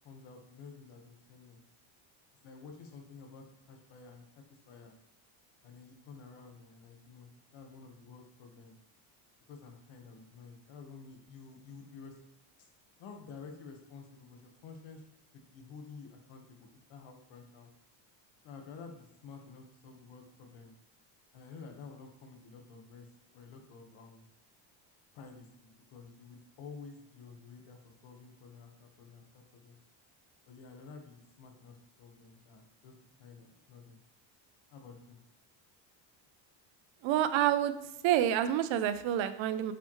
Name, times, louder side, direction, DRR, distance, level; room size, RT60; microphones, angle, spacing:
voice 1, 0.0-1.6 2.4-4.2 4.5-4.9 5.6-8.8 9.5-12.1 12.6-12.7 13.0-15.0 15.3-17.7 18.4-20.7 21.3-23.1 23.3-24.3 25.1-29.8 30.5-34.0 34.7-35.2, left 5 dB, 65° left, 3 dB, 1.4 m, -51 dB
voice 2, 37.0-37.7 38.0-39.7, right 11 dB, 70° right, 11 dB, 0.7 m, -28 dB
8.1 x 4.2 x 3.2 m, 0.82 s
cardioid pair, 120°, 49 cm